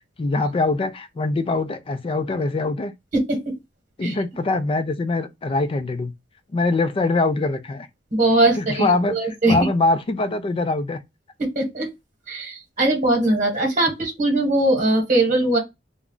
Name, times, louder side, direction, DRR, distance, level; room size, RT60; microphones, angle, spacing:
voice 1, 0.2-2.9 4.0-6.1 6.5-7.9 8.6-9.2 9.5-11.0, left 3 dB, 30° left, 0.3 m, -23 dB
voice 2, 3.1-3.6 4.0-4.2 8.1-9.6 11.4-11.9 12.3-15.6, right 2 dB, 45° right, 1.1 m, -20 dB
2.3 x 2.1 x 3.7 m
head